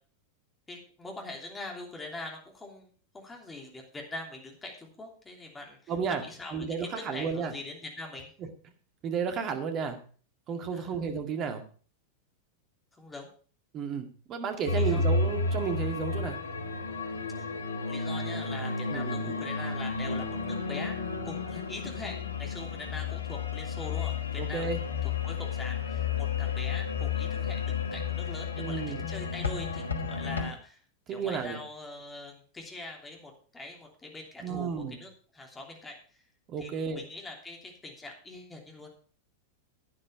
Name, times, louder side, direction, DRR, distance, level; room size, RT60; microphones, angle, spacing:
voice 1, 0.7-2.9 3.1-8.3 10.7-10.9 13.0-13.3 14.7-15.0 17.9-20.9 21.2-24.7 25.2-30.8 31.1-36.0 36.6-38.9, left 2 dB, 15° left, 1 dB, 3.1 m, -43 dB
voice 2, 5.9-6.2 6.5-7.5 8.4-8.5 9.0-10.0 10.5-11.6 13.7-16.4 18.9-19.4 24.4-24.8 28.6-29.0 31.1-31.6 34.4-35.0 36.5-37.0, right 6 dB, 35° right, 6 dB, 2.0 m, -32 dB
sound 1, 14.7-30.5, left 4 dB, 75° left, 1.2 m, -32 dB
11.0 x 9.9 x 4.9 m, 0.41 s
figure-of-eight pair, 90°, 0 cm